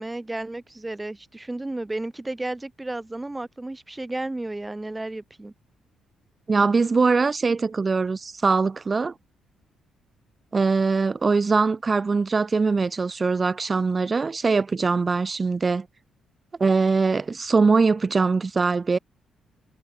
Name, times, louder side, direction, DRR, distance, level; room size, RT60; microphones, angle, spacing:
voice 1, 0.0-5.5, right 2 dB, 15° right, 4.2 m, -33 dB
voice 2, 6.5-9.1 10.5-15.9 16.6-19.0, right 4 dB, 30° right, 1.4 m, -22 dB
cardioid pair, 90°, 0 cm